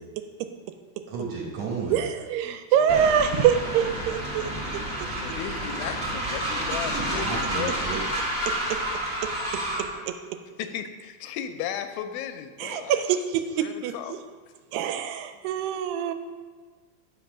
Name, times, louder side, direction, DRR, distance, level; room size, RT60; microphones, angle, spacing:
voice 1, 1.1-2.0 6.8-8.0, right 4 dB, 65° right, -1 dB, 1.9 m, -33 dB
voice 2, 1.9-4.8 8.7-8.8 9.2-9.3 10.1-10.2 12.6-14.2 14.7-16.1, right 8 dB, 80° right, 9 dB, 2.2 m, -25 dB
voice 3, 2.5-3.1 5.2-7.7 10.6-13.0 13.6-14.2, left 9 dB, 90° left, 8 dB, 2.5 m, -35 dB
Train, 2.9-9.9, right 1 dB, 35° right, 0.9 m, -30 dB
8.1 x 5.3 x 6.0 m, 1.4 s
omnidirectional pair, 4.1 m